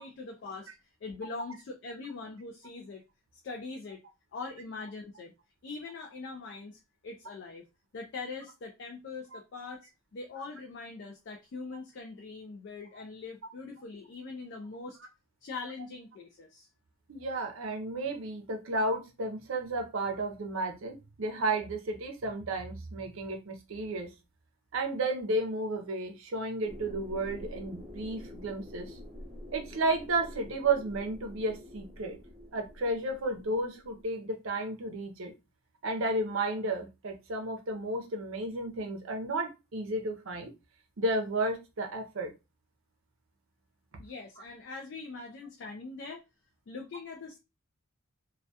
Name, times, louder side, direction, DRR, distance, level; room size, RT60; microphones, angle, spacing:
voice 1, 0.0-3.0 3.4-4.0 4.3-5.3 5.6-7.7 7.9-15.0 15.4-16.7 44.0-46.2 46.7-47.4, left 4 dB, 50° left, 2 dB, 0.3 m, -42 dB
voice 2, 17.1-24.1 24.7-29.0 29.5-32.2 32.5-35.3 35.8-40.5 41.0-42.3, right 2 dB, 65° right, 4 dB, 0.5 m, -32 dB
sound 1, 26.6-34.0, left 1 dB, 30° right, 0.8 m, -47 dB
2.2 x 2.2 x 2.6 m, 0.25 s
head